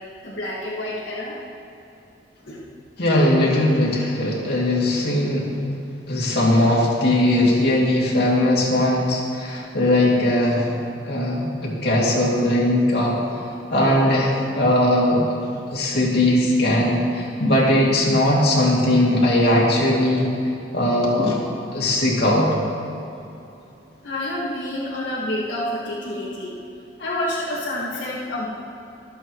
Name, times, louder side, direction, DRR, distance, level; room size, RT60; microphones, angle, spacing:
voice 1, 0.2-1.4 2.4-2.7 24.0-26.6 27.0-28.5, left 1 dB, 80° left, -8 dB, 2.0 m, -28 dB
voice 2, 3.0-5.5 6.1-10.7 11.1-13.2 13.7-15.2 15.7-20.3 20.7-21.4 21.7-22.5, left 1 dB, 60° left, -5 dB, 2.8 m, -19 dB
24.0 x 8.3 x 3.2 m, 2.8 s
head